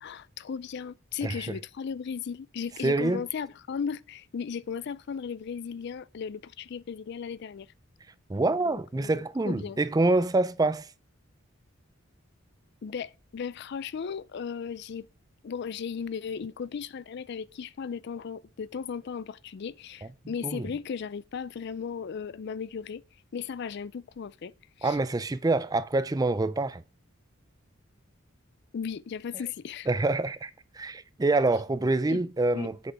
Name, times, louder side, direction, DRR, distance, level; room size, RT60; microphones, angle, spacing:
voice 1, 0.0-7.7 8.7-9.8 12.8-15.1 15.4-23.0 23.3-25.0 28.7-29.9 32.1-32.2 32.5-32.8, left 6 dB, 55° left, 0.4 m, -36 dB
voice 2, 2.8-3.2 8.3-10.9 20.4-20.7 24.8-26.8 29.9-30.5 30.8-32.9, right 2 dB, 20° right, 0.4 m, -26 dB
8.0 x 6.1 x 4.5 m
head